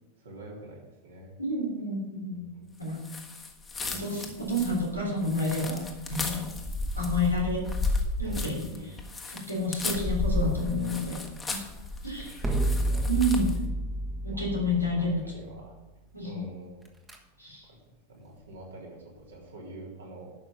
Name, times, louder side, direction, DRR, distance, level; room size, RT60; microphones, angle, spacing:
voice 1, 0.2-1.4 2.3-3.1 3.8-4.2 6.2-6.4 8.2-8.9 11.5-11.7 12.2-13.1 14.3-15.8 16.2-16.8 17.6-20.3, right 1 dB, 65° right, -3 dB, 3.5 m, -47 dB
voice 2, 1.4-2.4 2.8-3.0 3.9-5.8 6.1-6.5 6.9-7.7 8.2-8.6 9.3-11.2 11.5-11.6 12.0-12.4 13.1-13.5 14.2-15.2 16.1-16.4 17.4-17.7, left 1 dB, 90° right, -4 dB, 3.8 m, -29 dB
sound 1, 3.0-13.6, left 3 dB, 15° left, 1.4 m, -33 dB
sound 2, 10.4-11.7 12.4-15.7 16.8-17.2, right 1 dB, 10° right, 1.4 m, -31 dB
11.0 x 6.4 x 5.7 m, 1.1 s
figure-of-eight pair, 90°, 0 cm